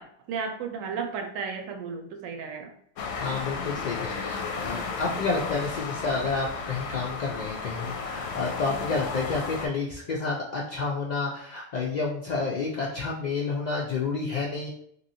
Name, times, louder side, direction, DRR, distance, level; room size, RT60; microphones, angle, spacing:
voice 1, 0.0-2.7, right 5 dB, 80° right, 6 dB, 0.9 m, -34 dB
sound 1, 3.0-9.7, left 5 dB, 65° left, 0.8 m, -34 dB
voice 2, 3.2-14.7, left 4 dB, 85° left, -3 dB, 0.4 m, -30 dB
3.0 x 2.8 x 2.7 m, 0.68 s
omnidirectional pair, 1.4 m